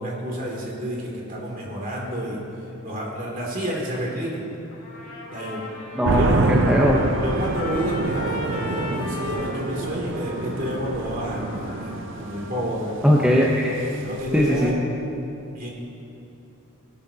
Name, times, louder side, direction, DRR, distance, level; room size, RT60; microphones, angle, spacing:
voice 1, 0.0-2.4 2.8-4.4 5.3-5.6 6.1-6.6 7.2-13.0 14.0-14.8 15.5-15.7, equal, 40° right, -3 dB, 2.7 m, -29 dB
Trumpet, 4.7-12.7, left 2 dB, 70° left, 2.8 m, -38 dB
sound 1, 6.0-14.7, right 3 dB, 60° right, 0.5 m, -28 dB
voice 2, 6.5-7.0 13.0-13.7 14.3-14.7, equal, 5° right, -4 dB, 0.8 m, -19 dB
19.5 x 11.5 x 2.9 m, 2.9 s
head